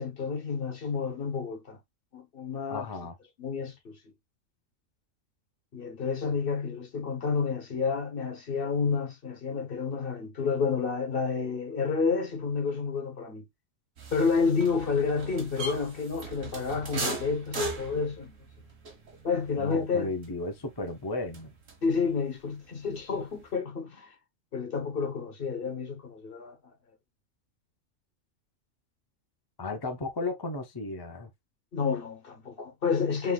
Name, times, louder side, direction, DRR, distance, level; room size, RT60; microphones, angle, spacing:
voice 1, 0.0-1.8 2.1-2.9 3.4-4.0 5.7-13.4 14.1-18.3 19.2-20.1 21.8-24.1 24.5-26.6 31.7-33.3, left 5 dB, 45° left, 1.2 m, -30 dB
voice 2, 2.7-3.1 19.6-21.5 29.6-31.3, left 2 dB, 25° left, 0.5 m, -34 dB
sound 1, 14.0-22.1 22.4-23.5, right 2 dB, 75° right, 1.7 m, -39 dB
5.7 x 3.2 x 2.3 m
omnidirectional pair, 1.4 m